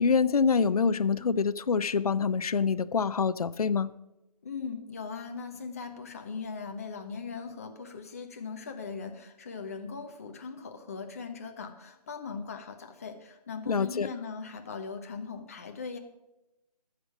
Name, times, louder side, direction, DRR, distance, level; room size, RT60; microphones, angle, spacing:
voice 1, 0.0-3.9 13.7-14.1, left 5 dB, 65° left, 0.6 m, -26 dB
voice 2, 4.4-16.0, left 5 dB, 25° left, 1.0 m, -39 dB
14.0 x 6.7 x 6.1 m
figure-of-eight pair, 165°, 20 cm